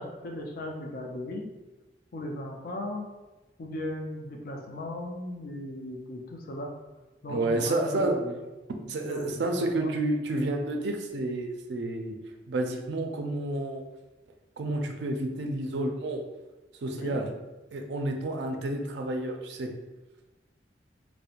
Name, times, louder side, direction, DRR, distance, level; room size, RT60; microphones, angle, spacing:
voice 1, 0.0-1.5 2.1-3.1 3.6-6.7 7.2-8.4 9.1-9.9 16.9-17.2, left 1 dB, 55° left, 1 dB, 0.4 m, -37 dB
voice 2, 7.3-8.2 8.9-12.2 12.5-13.8 14.6-16.2 16.8-17.3 17.7-19.7, right 2 dB, 70° right, 3 dB, 0.4 m, -30 dB
2.4 x 2.1 x 2.8 m, 1.1 s
head